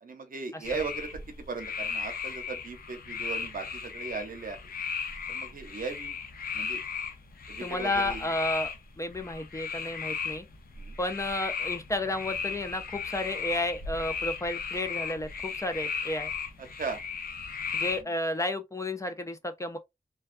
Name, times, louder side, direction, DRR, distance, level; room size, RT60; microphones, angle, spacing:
voice 1, 0.0-1.1 1.5-4.6 5.3-6.2 6.5-6.8 7.5-8.3 10.8-11.0 16.6-17.0, right 4 dB, 70° right, 0.7 m, -37 dB
sound 1, 0.6-18.0, left 6 dB, 80° left, 0.6 m, -36 dB
voice 2, 7.6-10.5 11.0-16.3 17.7-19.8, left 1 dB, 20° left, 0.5 m, -32 dB
2.3 x 2.3 x 2.5 m
cardioid pair, 65°, 15 cm